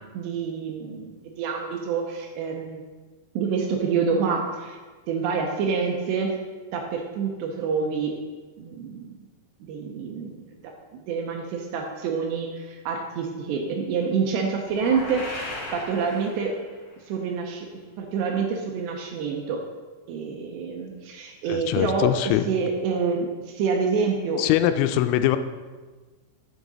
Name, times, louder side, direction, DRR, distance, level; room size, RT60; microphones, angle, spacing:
voice 1, 0.1-2.8 3.4-4.8 5.1-6.3 6.7-8.1 8.6-9.0 9.6-10.5 11.1-16.5 17.1-17.7 18.0-19.6 20.1-22.1 22.5-24.7, right 5 dB, 80° right, 2 dB, 2.7 m, -27 dB
sound 1, 14.6-16.8, left 2 dB, 55° left, 3.9 m, -36 dB
voice 2, 21.4-22.4 24.4-25.4, left 13 dB, 90° left, 10 dB, 3.1 m, -22 dB
8.6 x 7.2 x 4.1 m, 1.3 s
omnidirectional pair, 5.5 m